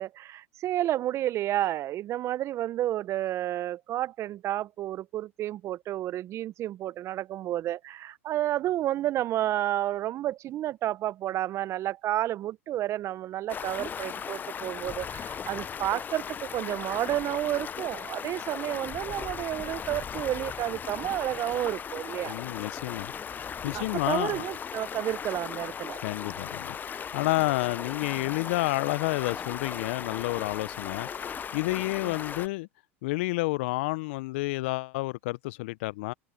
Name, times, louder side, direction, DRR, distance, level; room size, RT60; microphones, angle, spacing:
voice 1, 0.0-22.4 23.7-26.0 32.0-32.1, right 13 dB, 40° right, 1.1 m, -31 dB
Stream, 13.5-32.5, left 7 dB, 25° left, 0.9 m, -37 dB
voice 2, 22.3-24.5 26.0-32.7 33.0-36.1, left 22 dB, 60° left, 0.8 m, -30 dB
hypercardioid pair, 85°, 7 cm